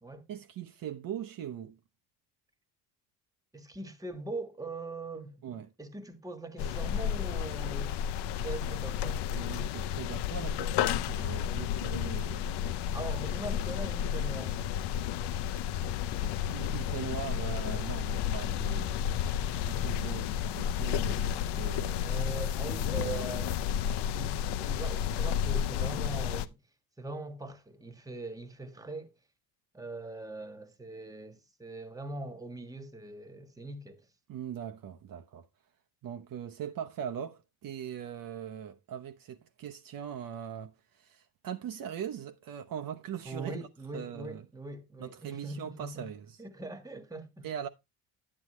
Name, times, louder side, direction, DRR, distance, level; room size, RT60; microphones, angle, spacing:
voice 1, 0.3-1.8 5.4-5.7 9.3-12.5 16.5-19.0 19.5-22.1 22.7-23.4 34.3-35.5 36.0-43.7 43.9-44.5 45.0-46.4 47.4-47.7, right 9 dB, 55° right, 0.9 m, -41 dB
voice 2, 3.5-8.0 8.4-9.3 12.9-14.7 22.0-23.5 24.1-26.6 27.0-29.1 29.7-34.1 43.2-46.1 46.4-47.5, right 2 dB, 10° right, 1.4 m, -41 dB
sound 1, 6.6-26.5, left 9 dB, 75° left, 0.8 m, -32 dB
9.9 x 8.6 x 3.1 m
cardioid pair, 120°, 41 cm